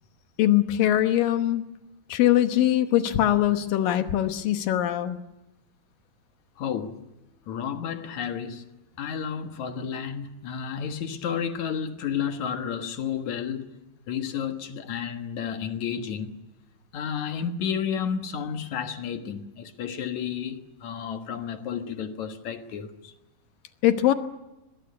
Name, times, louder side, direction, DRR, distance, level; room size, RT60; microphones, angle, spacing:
voice 1, 0.4-1.6 2.1-5.2 23.8-24.1, left 12 dB, 80° left, 2.8 m, -22 dB
voice 2, 6.6-7.0 7.5-8.6 9.0-13.7 14.1-16.3 16.9-23.1, left 7 dB, 60° left, 2.6 m, -31 dB
23.0 x 21.5 x 9.7 m
omnidirectional pair, 4.0 m